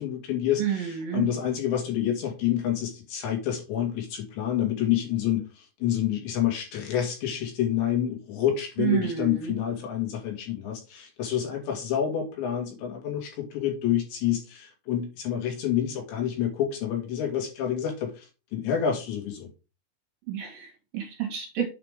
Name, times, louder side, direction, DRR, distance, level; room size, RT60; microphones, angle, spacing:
voice 1, 0.0-18.3 18.5-19.5, left 10 dB, 70° left, 2 dB, 4.6 m, -28 dB
voice 2, 0.6-1.3 8.8-9.5 20.3-21.7, right 9 dB, 60° right, 4 dB, 3.0 m, -29 dB
8.4 x 5.8 x 3.6 m, 0.30 s
omnidirectional pair, 5.5 m